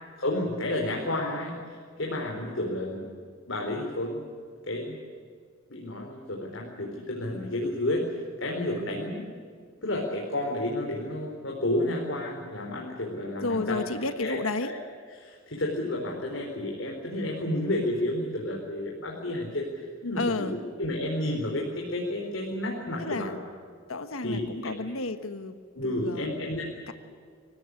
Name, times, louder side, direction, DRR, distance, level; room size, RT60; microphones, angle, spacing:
voice 1, 0.2-1.5 2.0-3.1 3.5-4.2 4.6-5.0 5.7-8.1 8.4-9.2 9.8-13.8 14.2-14.7 15.2-20.5 20.8-23.3 24.2-24.7 25.7-26.9, left 1 dB, 65° left, -2 dB, 4.4 m, -31 dB
voice 2, 13.4-14.7 20.2-20.6 23.0-23.3 23.9-26.3 26.9-27.0, left 3 dB, 90° left, 9 dB, 1.4 m, -32 dB
25.0 x 17.0 x 10.0 m, 2.1 s
head